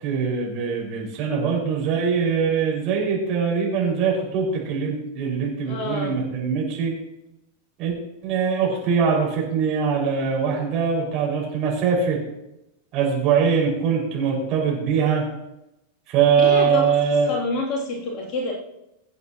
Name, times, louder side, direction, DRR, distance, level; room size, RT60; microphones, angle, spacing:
voice 1, 0.0-6.9 7.8-7.9 8.2-12.2 12.9-15.2 16.1-17.3, right 6 dB, 40° right, -2 dB, 5.2 m, -22 dB
voice 2, 5.6-6.2 16.4-16.9 17.3-18.5, left 2 dB, 40° left, -1 dB, 2.8 m, -27 dB
23.5 x 8.1 x 2.9 m, 0.89 s
figure-of-eight pair, 90°, 0 cm